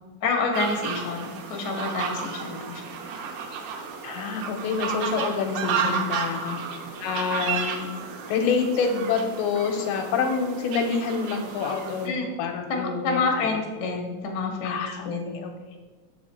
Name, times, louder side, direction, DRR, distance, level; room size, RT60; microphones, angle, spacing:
voice 1, 0.2-2.8 5.7-6.1 6.4-6.6 12.0-12.3 12.7-15.4, left 4 dB, 60° left, 1 dB, 1.1 m, -28 dB
sound 1, 0.5-12.1, right 6 dB, 70° right, 1.8 m, -32 dB
voice 2, 4.0-6.4 7.0-7.9 8.3-13.4 14.6-15.5, left 5 dB, 80° left, 4 dB, 2.2 m, -27 dB
7.5 x 4.8 x 4.2 m, 1.3 s
omnidirectional pair, 3.6 m